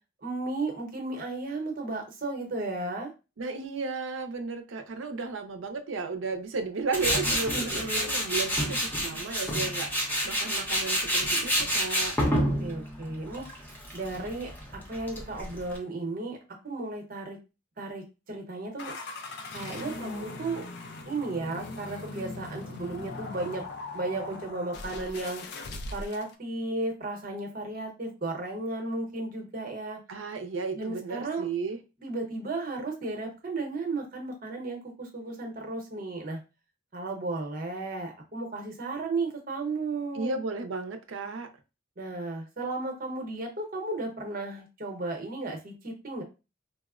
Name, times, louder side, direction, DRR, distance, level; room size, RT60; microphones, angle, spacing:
voice 1, 0.2-3.1 7.5-8.1 12.3-13.4 13.9-14.5 14.9-16.4 16.6-17.4 17.8-18.9 19.5-20.7 21.0-23.6 23.9-25.4 25.9-30.0 30.7-31.5 32.0-36.4 36.9-40.4 42.0-46.2, right 2 dB, 45° right, 2 dB, 0.8 m, -34 dB
voice 2, 3.4-12.2 30.1-31.8 40.1-41.5, right 4 dB, 75° right, 7 dB, 0.5 m, -34 dB
Tools, 6.9-15.8, equal, 10° left, 0.6 m, -29 dB
sound 1, 18.8-26.4, left 2 dB, 55° left, 0.4 m, -40 dB
4.1 x 2.0 x 2.4 m, 0.28 s
head